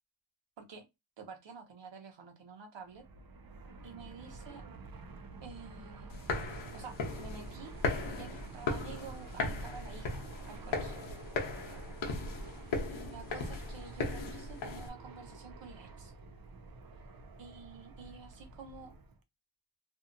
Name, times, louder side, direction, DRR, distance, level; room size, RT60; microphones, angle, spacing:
voice 1, 1.2-3.0 3.8-4.6 5.4-6.1 6.7-7.8 8.1-11.0 12.9-16.1 17.4-18.9, right 5 dB, 75° right, 1.0 m, -50 dB
Fixed-wing aircraft airplane, 2.8-19.2, right 3 dB, 50° right, 0.6 m, -50 dB
sound 1, 6.1-14.9, left 3 dB, 90° left, 0.9 m, -37 dB
2.7 x 2.4 x 2.5 m
wide cardioid pair, 95°, 44 cm